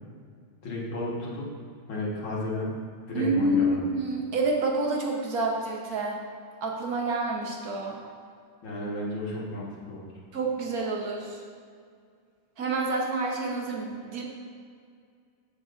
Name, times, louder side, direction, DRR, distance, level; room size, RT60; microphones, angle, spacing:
voice 1, 0.6-1.5 1.9-2.7 3.1-3.8 8.6-10.1, left 1 dB, 70° left, -4 dB, 2.3 m, -33 dB
voice 2, 3.1-6.2 6.6-8.0 10.3-11.4 12.6-14.2, right 2 dB, 55° right, -1 dB, 1.3 m, -28 dB
14.5 x 5.0 x 2.6 m, 2.2 s
omnidirectional pair, 2.2 m